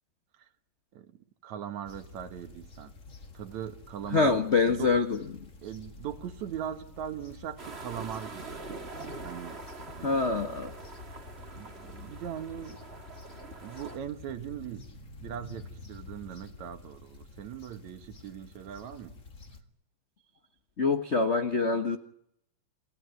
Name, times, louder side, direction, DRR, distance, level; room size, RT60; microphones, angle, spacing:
voice 1, 1.4-2.9 3.3-4.4 4.7-4.9 5.6-8.6 9.2-9.6 9.9-10.6 11.6-12.8 13.6-14.9 15.2-19.2, right 9 dB, 70° right, 9 dB, 2.6 m, -40 dB
sound 1, 1.9-19.6, left 3 dB, 30° left, 1.9 m, -49 dB
voice 2, 4.1-5.4 10.0-10.7 20.8-22.0, left 4 dB, 75° left, 7 dB, 0.6 m, -25 dB
sound 2, 7.6-14.0, right 3 dB, 25° right, 1.9 m, -44 dB
29.0 x 17.0 x 9.4 m, 0.74 s
omnidirectional pair, 3.5 m